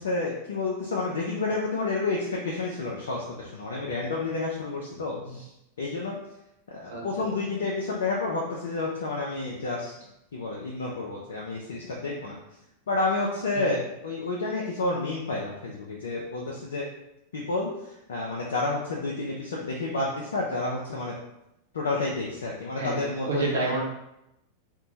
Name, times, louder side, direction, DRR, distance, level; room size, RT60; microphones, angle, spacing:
voice 1, 0.0-5.5 5.8-6.1 6.7-9.9 10.3-12.4 12.9-16.9 17.3-17.7 18.1-21.1 21.7-23.8, left 3 dB, 65° left, -2 dB, 0.4 m, -30 dB
voice 2, 22.8-23.8, right 3 dB, 65° right, -3 dB, 0.7 m, -30 dB
2.6 x 2.1 x 2.7 m, 0.87 s
figure-of-eight pair, 90°, 0 cm